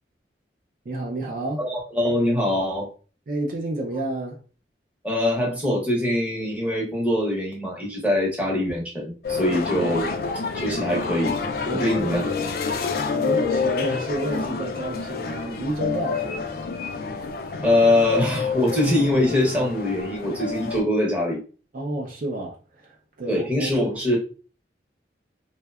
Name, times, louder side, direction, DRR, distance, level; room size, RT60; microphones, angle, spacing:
voice 1, 0.9-1.6 3.3-4.4 11.7-12.3 13.1-16.5 21.7-23.9, right 2 dB, 50° right, 0.4 m, -30 dB
voice 2, 1.6-2.9 5.0-10.1 10.3-11.4 11.8-12.2 17.6-21.4 23.3-24.2, left 1 dB, 10° right, 0.7 m, -23 dB
sound 1, 9.2-20.8, left 5 dB, 55° left, 0.3 m, -28 dB
2.7 x 2.1 x 2.3 m
head